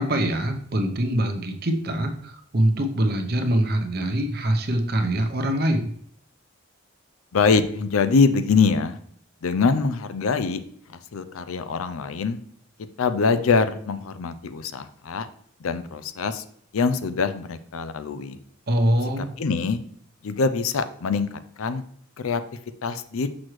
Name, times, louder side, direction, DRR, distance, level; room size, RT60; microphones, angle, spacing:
voice 1, 0.0-5.9 18.7-19.3, right 1 dB, 50° right, 5 dB, 0.8 m, -24 dB
voice 2, 7.3-9.0 9.4-10.6 10.9-12.4 13.0-15.3 15.6-16.4 16.7-18.4 19.2-19.8 20.2-21.8 22.2-22.4 22.8-23.3, left 4 dB, 90° left, 12 dB, 0.5 m, -24 dB
6.2 x 6.1 x 3.1 m, 0.64 s
head